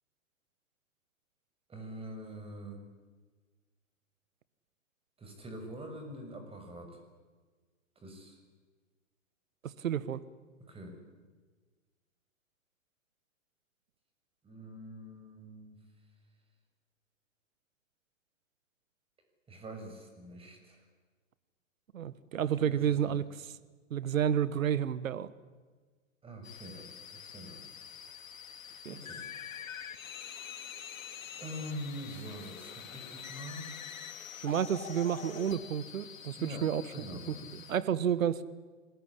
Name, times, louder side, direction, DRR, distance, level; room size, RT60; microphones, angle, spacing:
voice 1, 1.7-2.8 5.2-7.0 8.0-8.4 10.7-10.9 14.4-15.8 19.5-20.8 22.6-23.2 26.2-27.6 28.9-29.2 31.4-33.7 36.4-37.4, equal, 15° right, 5 dB, 6.5 m, -44 dB
voice 2, 9.6-10.2 21.9-23.5 23.9-25.3 28.8-29.0 34.4-36.8 37.5-38.4, right 9 dB, 80° right, 16 dB, 1.5 m, -30 dB
sound 1, 26.4-37.8, left 8 dB, 80° left, 3.3 m, -46 dB
27.0 x 20.0 x 10.0 m, 1.4 s
hypercardioid pair, 130°, 39 cm